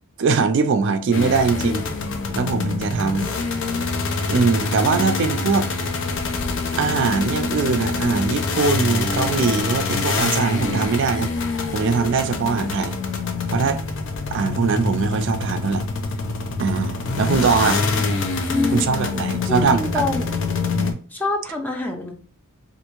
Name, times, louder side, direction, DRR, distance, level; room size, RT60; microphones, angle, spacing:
voice 1, 0.2-1.9 2.3-3.3 4.3-5.7 6.8-11.3 11.7-13.0 13.5-13.8 14.3-15.9 16.6-17.8 18.7-20.0 20.7-21.0, right 5 dB, 60° right, 0.4 m, -21 dB
sound 1, 1.1-20.9, left 4 dB, 60° left, 0.5 m, -25 dB
voice 2, 18.4-18.9 19.5-20.3 21.1-22.1, left 2 dB, 10° left, 0.5 m, -25 dB
3.4 x 2.5 x 2.9 m
head